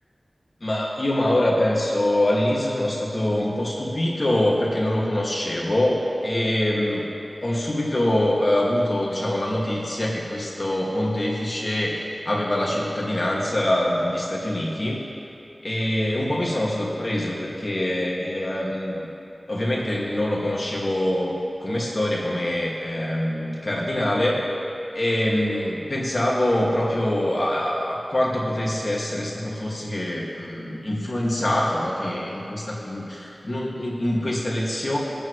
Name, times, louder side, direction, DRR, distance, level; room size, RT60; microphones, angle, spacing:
voice 1, 0.6-7.1 7.4-15.0 15.6-19.1 19.5-24.4 24.9-35.0, left 1 dB, 50° left, -4 dB, 2.1 m, -24 dB
23.0 x 8.9 x 3.2 m, 2.9 s
wide cardioid pair, 45°, 0 cm